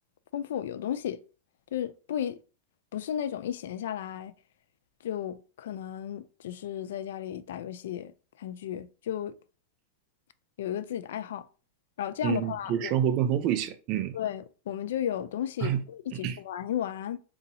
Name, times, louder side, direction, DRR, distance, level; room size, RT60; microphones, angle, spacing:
voice 1, 0.3-1.2 1.7-2.4 2.9-4.3 5.0-8.1 8.4-9.3 10.6-11.5 12.0-12.9 14.1-17.2, left 10 dB, 80° left, 0.3 m, -34 dB
voice 2, 12.2-14.2 15.6-15.8 16.1-16.4, right 10 dB, 35° right, 0.5 m, -28 dB
2.7 x 2.7 x 4.0 m
supercardioid pair, 160°, 0 cm